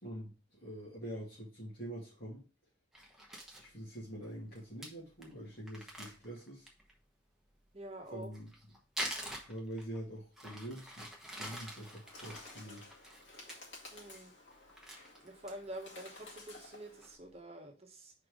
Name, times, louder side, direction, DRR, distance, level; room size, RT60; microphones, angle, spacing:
voice 1, 0.0-2.4 3.6-6.7 8.1-8.5 9.4-11.1 11.4-12.9, right 1 dB, 55° left, -8 dB, 2.6 m, -45 dB
Crumpling crinkling, 2.9-3.7 4.2-4.3 4.6-4.7 4.8-4.9 5.2-5.3 5.7-6.9 8.1-10.0 10.4-13.6 13.9-14.2 14.5-15.8 16.2-16.3 16.6-17.1, equal, ahead, 1.1 m, -45 dB
voice 2, 7.7-8.3 13.9-14.3 15.2-18.1, right 1 dB, 35° right, 2 dB, 1.2 m, -47 dB
Bird, 11.6-17.2, left 2 dB, 75° left, 2.1 m, -54 dB
5.1 x 4.5 x 5.0 m, 0.33 s
head